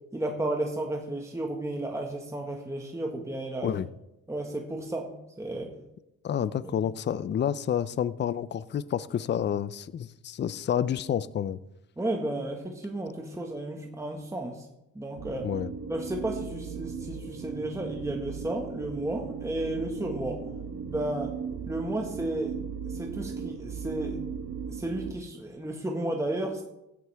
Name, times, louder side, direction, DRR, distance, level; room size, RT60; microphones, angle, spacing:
voice 1, 0.1-3.7 4.3-5.7 6.6-6.7 12.0-14.7 14.9-15.5 15.9-20.4 20.9-21.3 21.7-22.6 22.9-24.2 24.7-26.6, right 1 dB, 10° right, 1.6 m, -33 dB
voice 2, 6.2-11.6 15.4-15.7, left 9 dB, 35° left, 0.5 m, -29 dB
sound 1, 15.2-25.1, right 6 dB, 50° right, 1.2 m, -37 dB
15.5 x 9.7 x 3.5 m
cardioid pair, 90°, 30 cm